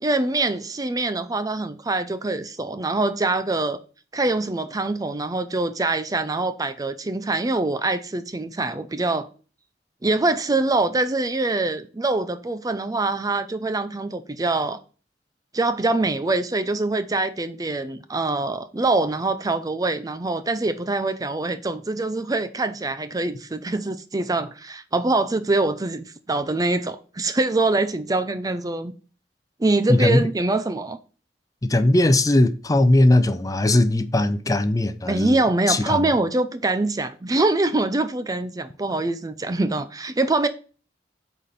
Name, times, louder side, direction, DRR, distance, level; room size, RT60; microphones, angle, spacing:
voice 1, 0.0-3.8 4.1-9.3 10.0-14.8 15.5-28.9 29.6-31.0 35.1-40.5, right 2 dB, 20° right, 0.5 m, -24 dB
voice 2, 29.9-30.2 31.6-36.1, left 1 dB, 20° left, 0.6 m, -19 dB
8.3 x 4.3 x 5.6 m
head